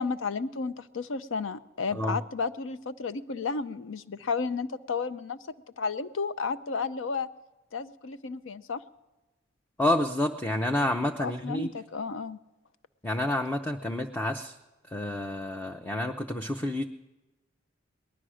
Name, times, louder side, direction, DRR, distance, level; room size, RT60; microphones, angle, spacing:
voice 1, 0.0-5.4 5.8-7.3 7.7-8.8 11.2-12.4, left 4 dB, 75° left, 13 dB, 0.6 m, -32 dB
voice 2, 9.8-11.7 13.0-14.6 14.9-16.9, left 1 dB, 10° left, 3 dB, 0.5 m, -29 dB
19.0 x 11.5 x 6.3 m, 1.1 s
head